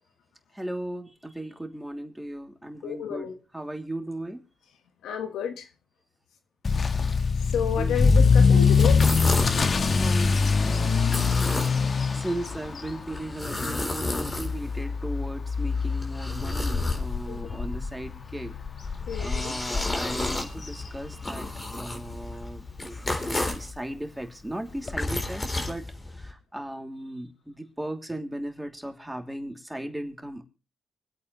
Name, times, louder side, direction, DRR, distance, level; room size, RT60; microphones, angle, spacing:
voice 1, 0.5-4.4 7.8-7.9 9.8-10.7 12.1-18.6 18.8-21.5 21.8-30.4, right 1 dB, 10° right, 3.1 m, -37 dB
voice 2, 2.8-3.3 5.0-5.7 7.5-9.1 17.3-17.6 19.1-19.6, left 8 dB, 80° left, 1.5 m, -31 dB
Motor vehicle (road) / Accelerating revving vroom, 6.7-21.5 21.8-22.2 22.7-22.8 23.1-23.2 23.5-23.6 24.9-25.0, left 5 dB, 50° left, 1.5 m, -24 dB
sound 1, 8.8-9.7 11.0-12.0 13.1-14.8 15.6-17.4 18.8-23.7 24.7-26.3, left 2 dB, 30° left, 3.9 m, -32 dB
25.0 x 8.6 x 3.2 m
supercardioid pair, 50°, 0 cm